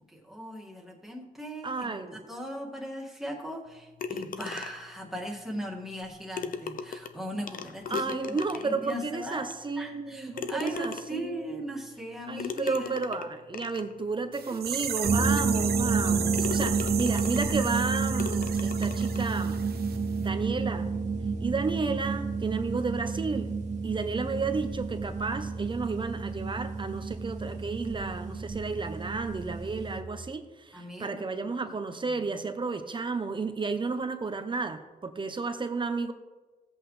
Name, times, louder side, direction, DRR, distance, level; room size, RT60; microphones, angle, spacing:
voice 1, 0.1-1.9 2.3-8.1 8.5-12.9 14.5-14.6 30.7-31.5 31.9-32.2, equal, ahead, -3 dB, 2.1 m, -39 dB
voice 2, 1.6-2.3 7.9-11.7 12.3-19.6 20.2-20.9 21.4-23.5 23.8-36.1, right 4 dB, 30° right, 8 dB, 0.8 m, -32 dB
sound 1, 4.0-5.0 6.0-6.1 6.4-8.9 9.5-9.6 10.3-11.3 12.4-13.9 14.6-14.7 15.2-15.3 15.8-16.0 16.3-17.6 18.2-19.3, left 6 dB, 60° left, 0.6 m, -38 dB
sound 2, 14.3-20.0 20.2-20.3, right 8 dB, 85° right, 0.8 m, -35 dB
sound 3, 15.0-30.0, right 4 dB, 50° right, 1.8 m, -30 dB
17.0 x 8.0 x 3.3 m, 1.3 s
wide cardioid pair, 110°, 16 cm